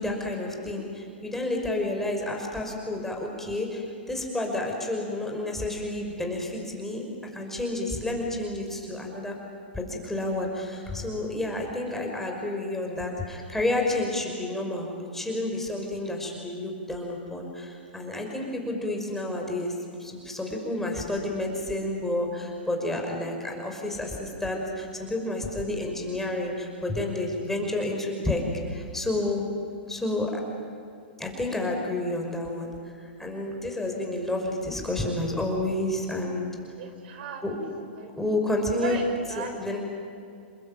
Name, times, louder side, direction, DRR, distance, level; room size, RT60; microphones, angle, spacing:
voice 1, 0.0-7.1 7.3-9.4 9.7-29.4 29.9-30.4 31.2-36.5 37.4-37.6 38.2-39.0 39.4-39.8, left 2 dB, 5° left, 1 dB, 5.7 m, -30 dB
voice 2, 36.8-37.4 38.0-38.1 38.8-39.8, right 5 dB, 60° right, 5 dB, 4.6 m, -37 dB
29.0 x 21.0 x 9.1 m, 2.5 s
hypercardioid pair, 120°, 6 cm